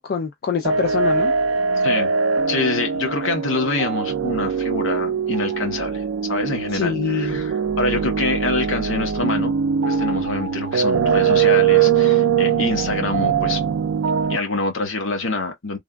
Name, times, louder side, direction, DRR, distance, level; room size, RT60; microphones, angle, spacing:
voice 1, 0.0-1.3 6.7-7.4, left 6 dB, 50° left, 0.4 m, -24 dB
sound 1, 0.6-14.4, right 7 dB, 85° right, 0.4 m, -21 dB
voice 2, 2.5-9.5 9.9-13.6 14.3-15.8, left 3 dB, 75° left, 1.1 m, -25 dB
3.3 x 2.2 x 2.4 m
head